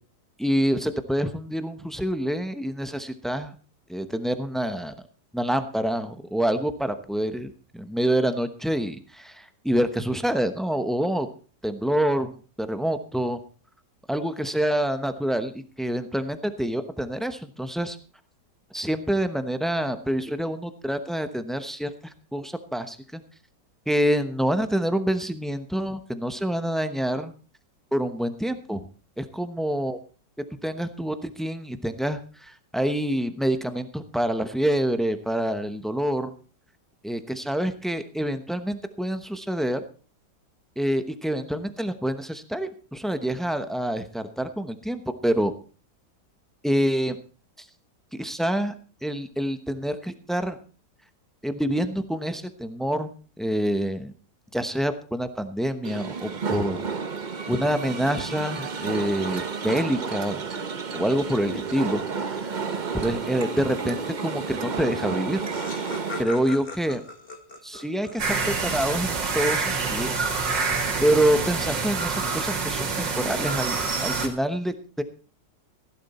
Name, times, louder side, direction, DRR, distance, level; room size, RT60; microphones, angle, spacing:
voice 1, 0.4-3.5 3.9-4.9 5.3-11.3 11.6-13.4 14.1-18.0 18.7-23.2 23.9-27.3 27.9-28.9 29.2-30.0 30.6-36.3 37.0-39.8 40.8-45.5 46.6-47.2 48.1-48.7 49.0-50.6 51.4-53.1 53.4-54.1 54.5-56.8 57.5-60.4 60.9-62.5 63.0-65.5 66.2-67.0 67.6-70.1 71.0-75.0, right 1 dB, ahead, 9 dB, 0.4 m, -27 dB
sound 1, 55.8-66.2, right 5 dB, 35° right, 0.7 m, -31 dB
Laughter, 64.8-64.9 65.1-68.8, left 3 dB, 30° left, 1.9 m, -40 dB
sound 2, 68.2-74.3, right 4 dB, 85° right, 2.7 m, -27 dB
16.0 x 11.0 x 4.3 m, 0.37 s
omnidirectional pair, 1.9 m